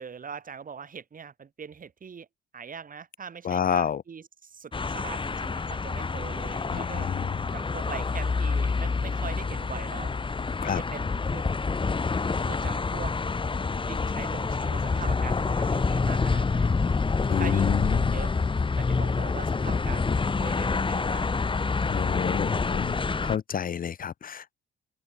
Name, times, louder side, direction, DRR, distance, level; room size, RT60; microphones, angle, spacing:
voice 1, 0.0-2.3 2.5-7.1 7.5-10.1 10.6-11.5 12.4-13.2 13.9-16.9 17.4-18.3 18.7-20.0 20.4-21.5 22.5-22.8, right 6 dB, 45° right, 6.6 m, -41 dB
voice 2, 3.4-4.0 6.7-7.3 10.6-10.8 17.3-18.2 21.9-23.0 23.2-24.5, left 8 dB, 45° left, 0.8 m, -29 dB
sound 1, 4.7-23.4, left 4 dB, 25° left, 1.4 m, -27 dB
open air
cardioid pair, 90°, 20 cm